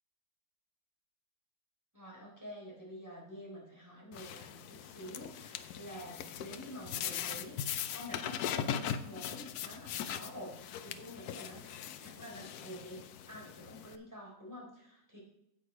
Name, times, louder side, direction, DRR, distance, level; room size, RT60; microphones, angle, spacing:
voice 1, 1.9-15.2, equal, 10° right, -4 dB, 3.8 m, -48 dB
sound 1, 4.1-14.0, left 9 dB, 70° left, 1.1 m, -40 dB
9.5 x 8.4 x 4.5 m, 0.81 s
omnidirectional pair, 1.8 m